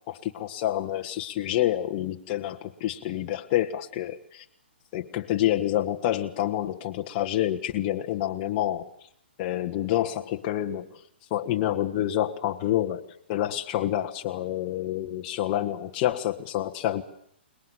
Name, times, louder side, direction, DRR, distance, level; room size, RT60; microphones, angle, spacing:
voice 1, 0.1-4.4 4.9-8.9 9.4-11.0 11.3-17.0, left 12 dB, 35° left, 4 dB, 1.5 m, -28 dB
28.5 x 20.0 x 7.5 m, 0.71 s
figure-of-eight pair, 120°, 6 cm